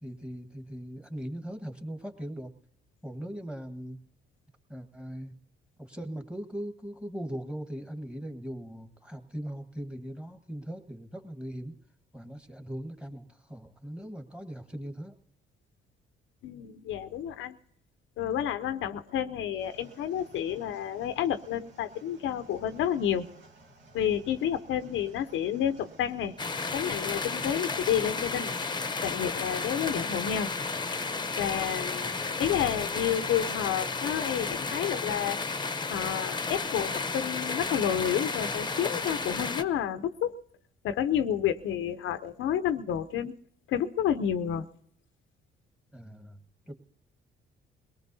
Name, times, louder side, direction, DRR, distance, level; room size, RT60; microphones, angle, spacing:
voice 1, 0.0-2.5 3.0-4.0 4.7-5.4 5.8-11.8 12.1-15.1 32.0-32.3 45.9-46.7, equal, 5° right, 7 dB, 1.5 m, -40 dB
voice 2, 16.4-17.5 18.2-23.3 23.9-26.3 26.7-28.5 29.0-30.5 31.4-35.4 35.9-40.3 40.8-43.3 43.7-44.7, left 9 dB, 80° left, 10 dB, 0.7 m, -30 dB
sound 1, 19.6-27.7, right 2 dB, 75° right, 2.1 m, -56 dB
sound 2, 26.4-39.6, left 4 dB, 20° left, 0.8 m, -32 dB
22.0 x 18.5 x 2.7 m, 0.67 s
cardioid pair, 90°, 20 cm